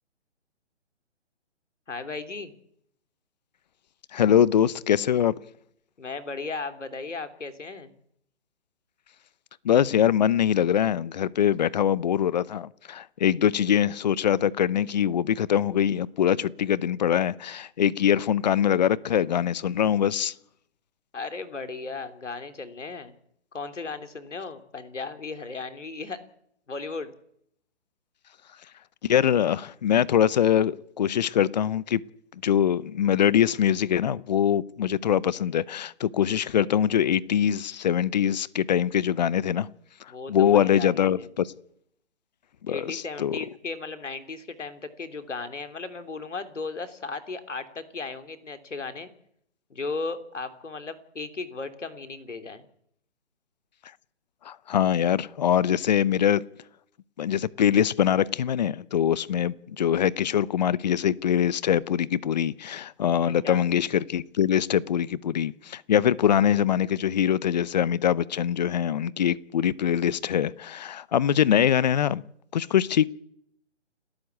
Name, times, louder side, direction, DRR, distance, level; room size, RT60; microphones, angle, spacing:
voice 1, 1.9-2.5 6.0-7.9 21.1-23.1 23.5-26.2 26.7-27.1 40.1-41.3 42.7-49.1 49.7-52.7 63.4-63.6, left 4 dB, 85° left, 3.3 m, -36 dB
voice 2, 4.1-5.4 9.6-20.3 29.0-32.0 32.4-39.7 40.3-41.5 42.6-43.4 54.4-56.4 57.2-72.2 72.5-73.1, left 9 dB, 35° left, 0.8 m, -23 dB
29.5 x 13.0 x 8.4 m
hypercardioid pair, 150°, 35 cm